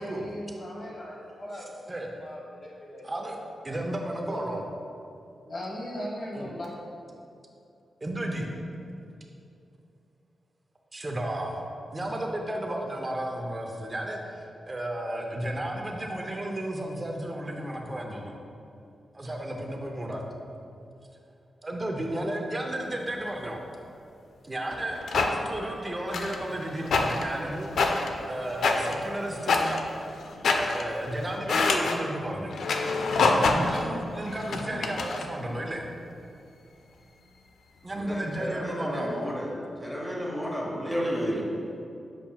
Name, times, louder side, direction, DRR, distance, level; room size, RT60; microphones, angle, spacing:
voice 1, 0.0-1.8 2.2-3.1 3.7-3.8 4.3-4.4 5.5-6.7, equal, 50° left, -4 dB, 1.3 m, -38 dB
voice 2, 1.5-2.1 3.0-3.4 3.6-4.6 6.3-6.5 8.0-8.5 10.9-11.6 11.9-18.4 19.1-20.6 21.6-23.6 24.4-27.7 28.0-29.8 30.5-32.6 33.3-35.9 37.8-39.3, right 1 dB, 20° right, 1 dB, 0.6 m, -33 dB
sound 1, 24.7-25.3 26.1-26.5 26.8-27.3 27.6-28.2 28.6-29.9 30.3-30.9 31.3-32.0 32.5-33.8 34.2-35.3, left 3 dB, 80° left, 0.4 m, -26 dB
voice 3, 37.9-39.5 39.8-41.5, equal, ahead, -3 dB, 0.9 m, -32 dB
7.2 x 5.7 x 2.3 m, 2.6 s
wide cardioid pair, 140°, 0 cm